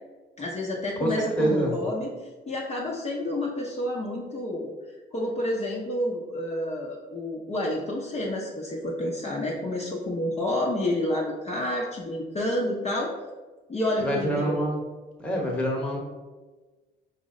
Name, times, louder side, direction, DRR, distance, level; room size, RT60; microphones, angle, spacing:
voice 1, 0.4-4.7 5.1-13.1 13.7-14.6, left 1 dB, 35° left, -4 dB, 0.7 m, -29 dB
voice 2, 1.0-1.7 14.0-14.8 15.2-16.0, right 1 dB, 5° left, -2 dB, 1.1 m, -26 dB
4.8 x 2.1 x 3.7 m, 1.2 s
cardioid pair, 90°, 20 cm